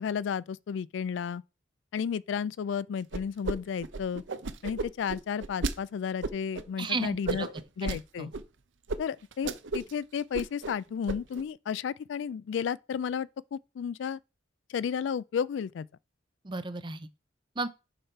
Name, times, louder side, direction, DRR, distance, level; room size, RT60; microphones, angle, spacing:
voice 1, 0.0-1.4 1.9-4.2 4.6-8.3 9.0-14.2 14.7-15.9, left 7 dB, 75° left, 0.3 m, -33 dB
sound 1, 3.1-3.6 3.8-5.7 6.2-6.6 7.3-8.0 8.3-8.4 8.9-9.0 9.3-9.9 10.2-10.7 11.1-11.4, right 3 dB, 80° right, 0.7 m, -33 dB
voice 2, 6.8-7.5 7.8-8.3 16.4-17.1 17.6-17.7, right 3 dB, 25° right, 0.6 m, -34 dB
6.6 x 5.6 x 4.4 m
head